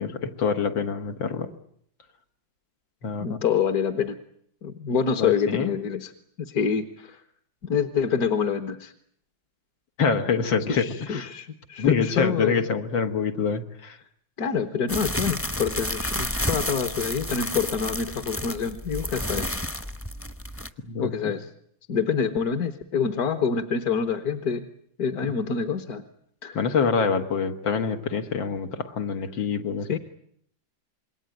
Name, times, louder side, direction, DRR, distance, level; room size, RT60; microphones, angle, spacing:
voice 1, 0.0-1.5 3.0-3.4 5.2-5.7 10.0-11.3 11.8-14.0 20.8-21.3 26.5-30.0, left 5 dB, 80° left, 6 dB, 2.5 m, -26 dB
voice 2, 3.2-4.2 4.6-6.1 6.4-7.2 7.6-8.9 10.7-12.6 14.4-19.6 21.0-21.5 21.9-24.7 25.0-26.0 26.4-26.6 29.9-30.0, left 6 dB, 55° left, 8 dB, 1.7 m, -26 dB
sound 1, 14.9-20.7, left 1 dB, 10° left, 0.8 m, -31 dB
27.0 x 21.5 x 9.1 m, 0.69 s
omnidirectional pair, 2.1 m